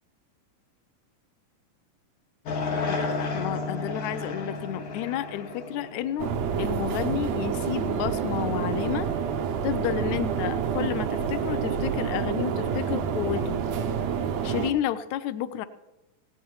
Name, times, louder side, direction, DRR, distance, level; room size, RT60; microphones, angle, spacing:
sound 1, 2.5-6.8, left 3 dB, 45° left, 2.3 m, -32 dB
voice 1, 2.9-6.3 6.6-9.1 9.6-13.6 14.4-15.7, left 11 dB, 85° left, 12 dB, 1.6 m, -31 dB
sound 2, 6.2-14.7, right 7 dB, 85° right, 1.4 m, -28 dB
19.0 x 16.5 x 3.1 m, 0.99 s
omnidirectional pair, 4.1 m